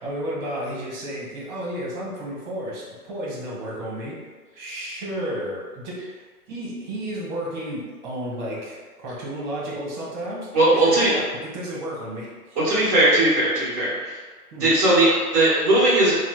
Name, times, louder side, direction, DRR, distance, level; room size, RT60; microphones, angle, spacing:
voice 1, 0.0-4.2 4.6-12.6 14.5-14.8, right 1 dB, 30° right, -5 dB, 0.8 m, -32 dB
voice 2, 10.5-11.1 12.6-14.2 14.6-16.1, right 1 dB, 15° right, -8 dB, 0.4 m, -18 dB
2.9 x 2.1 x 3.1 m, 1.4 s
hypercardioid pair, 140°, 46 cm